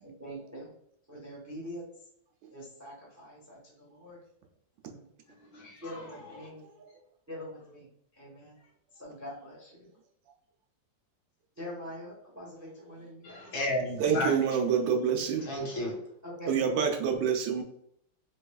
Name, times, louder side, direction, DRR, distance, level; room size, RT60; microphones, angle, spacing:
voice 1, 0.0-0.7 1.1-1.8 2.5-4.2 4.9-5.1 5.8-6.6 7.3-8.6 8.9-9.9 11.6-13.5 14.0-14.4 16.2-16.7, equal, 20° right, 0.4 m, -44 dB
voice 2, 5.5-5.9 6.4-6.5 13.2-14.3 15.4-15.9, left 1 dB, 75° left, 1.9 m, -33 dB
voice 3, 14.0-15.4 16.5-17.6, right 7 dB, 75° right, 1.2 m, -27 dB
4.0 x 3.2 x 2.2 m
omnidirectional pair, 2.2 m